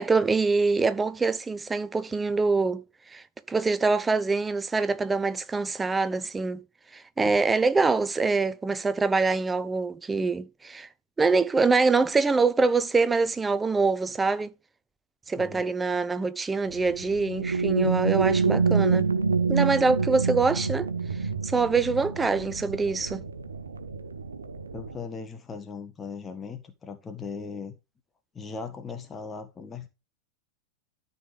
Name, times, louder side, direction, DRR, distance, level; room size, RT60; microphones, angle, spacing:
voice 1, 0.0-6.6 6.9-10.9 11.2-14.5 15.3-19.1 19.5-20.9 21.4-23.2, right 4 dB, 15° right, 0.8 m, -25 dB
sound 1, 16.7-25.0, right 5 dB, 75° right, 1.0 m, -27 dB
voice 2, 24.7-27.7 28.3-29.9, left 5 dB, 20° left, 1.5 m, -38 dB
13.0 x 5.5 x 3.3 m
figure-of-eight pair, 90°, 0 cm